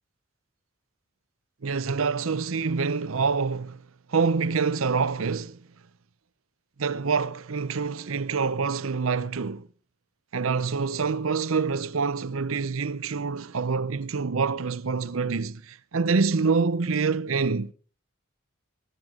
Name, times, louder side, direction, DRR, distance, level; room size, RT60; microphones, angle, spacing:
voice 1, 1.6-3.8 4.1-5.6 6.8-9.7 10.3-17.7, right 5 dB, 80° right, 0.7 m, -26 dB
24.0 x 12.5 x 3.7 m
head